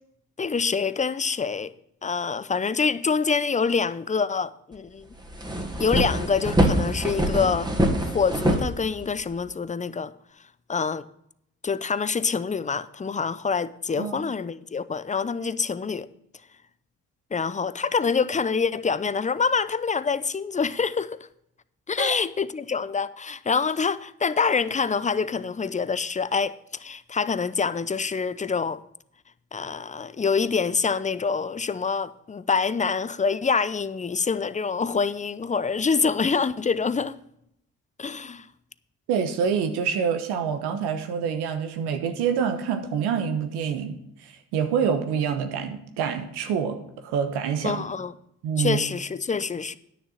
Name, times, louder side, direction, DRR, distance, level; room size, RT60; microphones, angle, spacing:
voice 1, 0.4-1.7 2.0-5.1 5.8-7.7 8.0-10.1 10.7-11.0 11.6-16.1 17.3-21.3 21.9-28.8 29.5-37.2 38.0-38.5 47.6-48.1 48.6-49.8, left 5 dB, 20° left, 0.6 m, -26 dB
sound 1, 4.7-4.8 5.1-9.4, right 1 dB, 10° right, 2.0 m, -24 dB
voice 2, 39.1-47.8 48.4-48.8, right 7 dB, 80° right, 1.2 m, -26 dB
9.6 x 6.6 x 6.4 m
hypercardioid pair, 45°, 39 cm